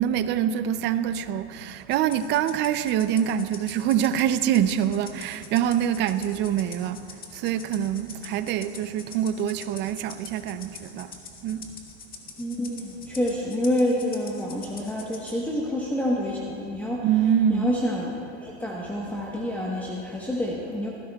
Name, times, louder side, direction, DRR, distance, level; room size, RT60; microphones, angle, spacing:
voice 1, 0.0-7.0 7.3-11.1 11.4-11.7 17.0-17.7, right 9 dB, 30° right, 0.5 m, -25 dB
Rattle (instrument), 1.9-15.4, left 5 dB, 25° left, 1.7 m, -44 dB
voice 2, 12.4-17.0 17.5-20.9, left 1 dB, 5° left, 1.1 m, -28 dB
20.0 x 16.0 x 2.3 m
supercardioid pair, 130°, 35 cm